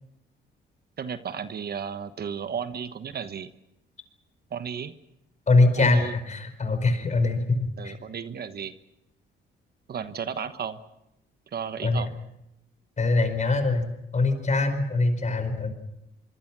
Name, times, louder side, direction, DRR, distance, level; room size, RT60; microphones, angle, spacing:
voice 1, 1.0-3.5 4.5-5.0 5.8-6.2 7.8-8.7 9.9-10.8 11.5-12.1, right 7 dB, 50° right, 11 dB, 1.3 m, -33 dB
voice 2, 5.5-7.9 11.8-12.0 13.0-15.7, left 3 dB, 35° left, 9 dB, 5.0 m, -23 dB
24.5 x 24.0 x 6.2 m, 0.85 s
cardioid pair, 90°, 20 cm